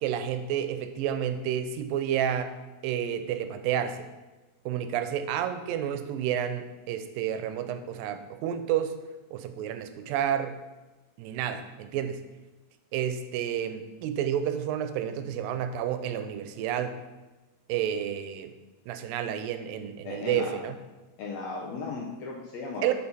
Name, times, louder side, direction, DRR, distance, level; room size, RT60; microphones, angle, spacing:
voice 1, 0.0-2.5 2.8-4.1 4.7-8.9 9.3-10.6 11.2-12.2 12.9-17.0 17.7-18.5 18.9-20.8 22.8-22.9, right 9 dB, 90° right, 9 dB, 2.3 m, -30 dB
voice 2, 20.0-20.5 21.2-22.9, left 4 dB, 85° left, -2 dB, 1.5 m, -36 dB
5.8 x 5.6 x 4.0 m, 1.1 s
omnidirectional pair, 3.9 m